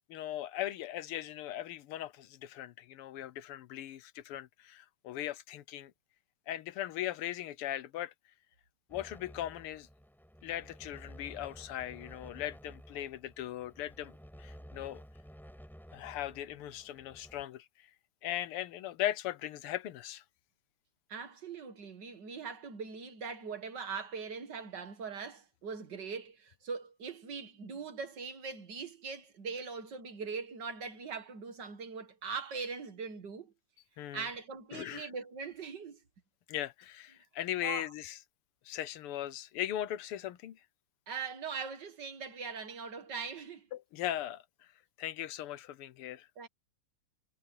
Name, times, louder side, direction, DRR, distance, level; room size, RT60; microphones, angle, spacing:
voice 1, 0.1-5.9 6.5-8.1 8.9-9.9 10.4-14.1 14.4-15.0 15.9-17.7 18.2-20.2 34.0-34.3 34.7-35.1 36.5-38.2 38.7-40.6 43.7-44.4 45.0-46.3, left 12 dB, 85° left, 1.8 m, -38 dB
sound 1, 8.9-17.4, equal, ahead, 5.2 m, -53 dB
voice 2, 21.1-33.5 34.1-36.0 37.6-37.9 41.1-43.7 46.4-46.5, right 5 dB, 55° right, 2.2 m, -41 dB
omnidirectional pair, 2.4 m